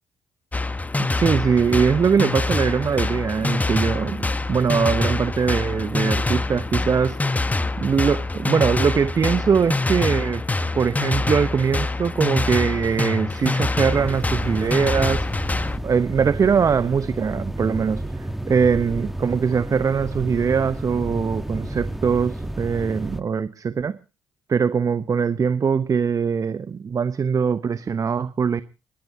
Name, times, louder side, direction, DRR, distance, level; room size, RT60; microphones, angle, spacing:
sound 1, 0.5-15.8, left 2 dB, 20° left, 1.0 m, -25 dB
voice 1, 1.0-7.2 7.8-10.4 10.7-15.5 15.8-24.0 24.5-28.6, right 6 dB, 45° right, 13 dB, 0.8 m, -22 dB
sound 2, 13.8-23.2, right 1 dB, 5° right, 1.6 m, -31 dB
30.0 x 11.5 x 2.8 m, 0.32 s
hypercardioid pair, 50°, 8 cm